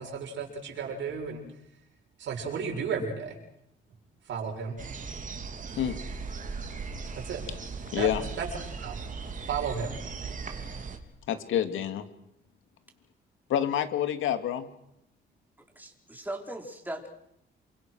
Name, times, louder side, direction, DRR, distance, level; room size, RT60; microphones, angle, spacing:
voice 1, 0.0-1.4 2.2-3.4 4.3-4.8 7.2-7.4 8.0-8.1 8.4-9.0 9.5-10.0, right 6 dB, 70° right, 2 dB, 7.5 m, -33 dB
sound 1, 4.8-11.0, right 4 dB, 40° right, 3.7 m, -38 dB
voice 2, 11.3-12.0 13.5-14.7, left 10 dB, 80° left, 9 dB, 2.6 m, -28 dB
voice 3, 15.8-17.1, right 1 dB, 10° right, 2 dB, 5.1 m, -38 dB
28.5 x 24.0 x 6.4 m, 0.80 s
cardioid pair, 90°, 20 cm